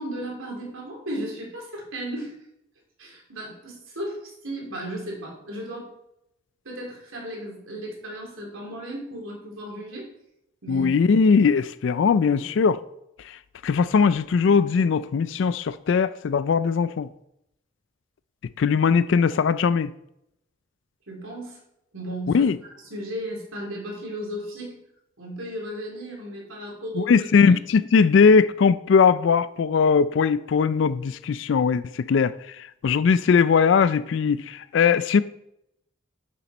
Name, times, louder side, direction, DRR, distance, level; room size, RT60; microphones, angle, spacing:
voice 1, 0.0-2.3 3.0-5.9 6.6-10.1 10.6-10.9 12.3-12.4 21.1-21.6 21.9-24.8 25.2-27.1, right 1 dB, 85° right, 3.2 m, -35 dB
voice 2, 10.7-12.8 13.2-17.1 18.6-19.9 22.3-22.6 26.9-35.2, left 5 dB, 65° left, 0.3 m, -20 dB
7.5 x 7.1 x 5.1 m
head